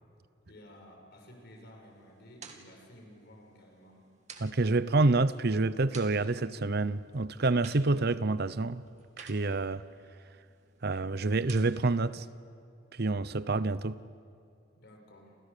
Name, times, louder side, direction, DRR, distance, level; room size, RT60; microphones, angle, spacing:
voice 1, 0.5-4.0 14.8-15.4, equal, 55° left, 6.0 m, -53 dB
sound 1, 1.8-12.0, right 5 dB, 35° right, 2.6 m, -55 dB
voice 2, 4.4-8.8 9.2-9.8 10.8-12.2 13.0-14.0, right 3 dB, 55° right, 0.8 m, -28 dB
29.0 x 28.5 x 6.9 m
head